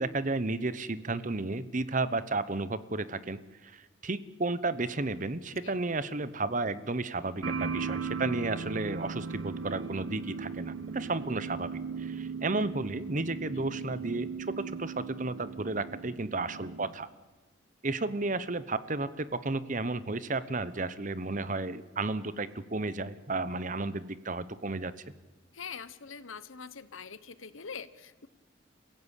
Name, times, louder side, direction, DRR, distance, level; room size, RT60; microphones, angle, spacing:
voice 1, 0.0-17.1 17.8-24.9, right 3 dB, 40° right, 15 dB, 0.9 m, -33 dB
sound 1, 7.4-16.9, right 5 dB, 85° right, 1.2 m, -38 dB
voice 2, 25.5-28.3, left 6 dB, 75° left, 14 dB, 1.2 m, -43 dB
28.5 x 16.5 x 8.4 m, 1.2 s
head